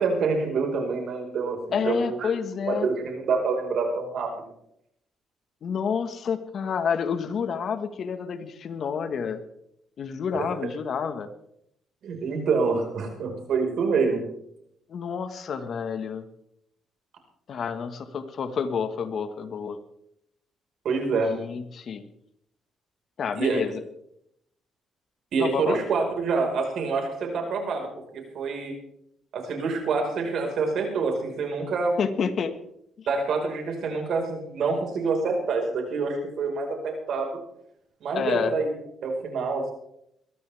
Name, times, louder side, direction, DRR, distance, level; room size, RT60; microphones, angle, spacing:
voice 1, 0.0-2.3 2.7-4.5 10.3-10.5 12.0-14.2 20.8-21.3 23.3-23.6 25.3-28.7 29.3-32.0 33.1-37.4 38.0-38.7 39.0-39.7, right 4 dB, 70° right, 2 dB, 5.1 m, -26 dB
voice 2, 1.7-2.9 5.6-9.4 10.0-11.3 14.9-16.2 17.5-19.8 21.3-22.1 23.2-23.8 25.4-25.8 32.0-32.5 33.0-33.1 38.1-38.5, left 6 dB, 60° left, 9 dB, 1.7 m, -29 dB
22.0 x 14.0 x 3.6 m, 0.74 s
cardioid pair, 90°, 0 cm